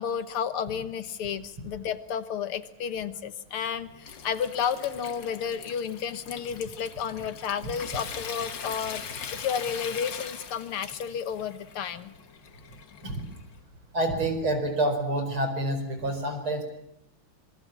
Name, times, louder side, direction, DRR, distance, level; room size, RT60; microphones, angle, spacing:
voice 1, 0.0-12.1, left 7 dB, 85° left, 12 dB, 2.2 m, -32 dB
Water tap faucet / Sink (filling or washing) / Trickle dribble, 3.6-13.5, left 7 dB, 60° left, 2.2 m, -41 dB
voice 2, 13.9-16.6, right 1 dB, 75° right, 7 dB, 5.6 m, -27 dB
26.5 x 22.5 x 7.3 m, 0.78 s
omnidirectional pair, 2.3 m